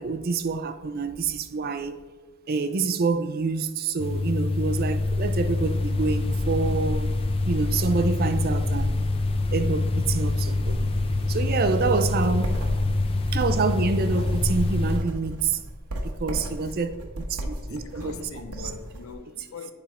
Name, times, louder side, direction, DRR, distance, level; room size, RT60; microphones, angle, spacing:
voice 1, 0.0-1.9 2.5-7.1 7.4-9.0 9.5-10.9 11.3-12.6 13.3-15.6 16.2-18.7 19.4-19.5, right 4 dB, 45° right, 0.4 m, -27 dB
sound 1, 4.0-15.0, left 2 dB, 25° left, 0.5 m, -25 dB
sound 2, 11.7-19.1, right 1 dB, 85° right, 1.1 m, -36 dB
voice 2, 17.4-19.7, left 4 dB, 65° left, 0.6 m, -42 dB
9.1 x 4.4 x 4.2 m
head